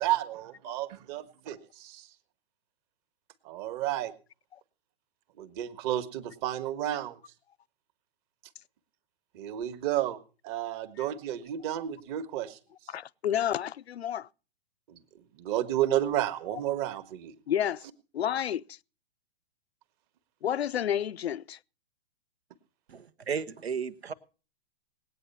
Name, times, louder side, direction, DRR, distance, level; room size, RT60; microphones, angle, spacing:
voice 1, 0.0-2.1 3.5-4.1 5.4-7.2 9.3-10.2 10.4-12.6 14.9-15.0 15.4-17.3, right 12 dB, 40° right, 1.7 m, -31 dB
voice 2, 12.9-14.3 16.5-16.6 17.5-17.8 18.1-18.8 20.4-21.6, left 10 dB, 80° left, 0.7 m, -30 dB
voice 3, 22.9-24.1, right 6 dB, 80° right, 1.4 m, -34 dB
19.5 x 8.9 x 5.6 m
hypercardioid pair, 120°, 31 cm